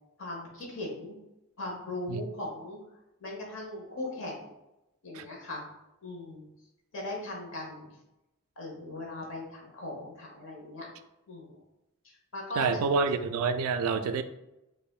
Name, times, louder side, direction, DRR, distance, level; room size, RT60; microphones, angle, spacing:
voice 1, 0.2-1.2 1.6-2.8 3.2-4.5 5.0-5.6 6.0-6.5 6.9-7.9 8.6-10.9 11.3-11.6 12.0-12.7, left 2 dB, 60° left, -1 dB, 1.1 m, -39 dB
voice 2, 12.6-14.2, right 5 dB, 85° right, 10 dB, 0.3 m, -27 dB
4.7 x 2.5 x 2.3 m, 0.92 s
head